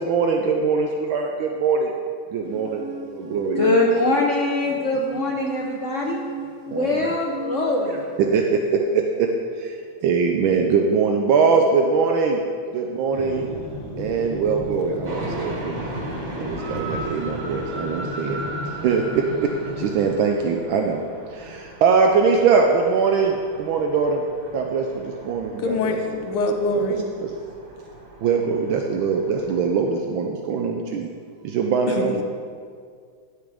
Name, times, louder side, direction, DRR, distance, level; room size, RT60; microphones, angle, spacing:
voice 1, 0.0-1.9 2.3-2.8 3.1-3.6 6.7-6.9 8.3-8.4 8.9-9.3 10.0-12.4 12.7-13.5 14.0-15.9 16.4-18.4 18.8-19.2 19.8-21.0 21.5-23.3 23.6-24.2 24.5-24.8 25.2-26.0 27.0-27.3 28.2-31.1 31.5-32.1, right 5 dB, 75° right, 2 dB, 1.4 m, -21 dB
sound 1, 2.5-8.4, right 5 dB, 55° right, 1.0 m, -35 dB
voice 2, 3.5-6.2 6.7-8.0, left 2 dB, 65° left, -1 dB, 0.7 m, -22 dB
sound 2, 13.1-20.0, left 2 dB, 50° left, 1.6 m, -34 dB
sound 3, 15.0-29.7, right 1 dB, 35° right, 0.7 m, -37 dB
voice 3, 25.6-27.0 31.9-32.2, left 2 dB, 90° left, 4 dB, 1.8 m, -24 dB
12.0 x 7.6 x 3.5 m, 2.1 s
omnidirectional pair, 2.3 m